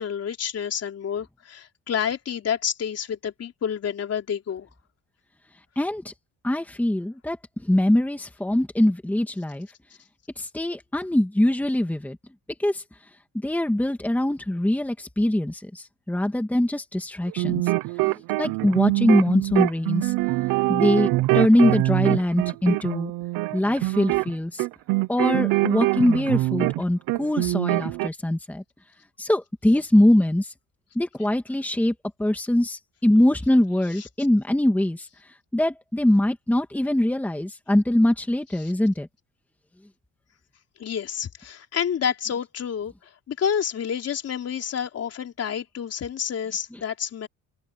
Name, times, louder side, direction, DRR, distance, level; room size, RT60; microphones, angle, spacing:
voice 1, 0.0-4.7 38.6-38.7 40.8-47.3, left 8 dB, 45° left, 3.8 m, -29 dB
voice 2, 5.8-6.1 6.4-7.4 7.6-9.7 10.4-12.2 12.6-12.8 13.3-17.6 18.0-20.1 20.7-23.1 23.5-24.7 25.1-28.6 29.2-30.5 31.0-31.9 32.2-35.1 35.5-39.1, left 1 dB, 5° left, 1.9 m, -22 dB
sound 1, 17.3-26.8 27.1-28.1, right 20 dB, 80° right, 0.7 m, -24 dB
open air
cardioid pair, 120°, 34 cm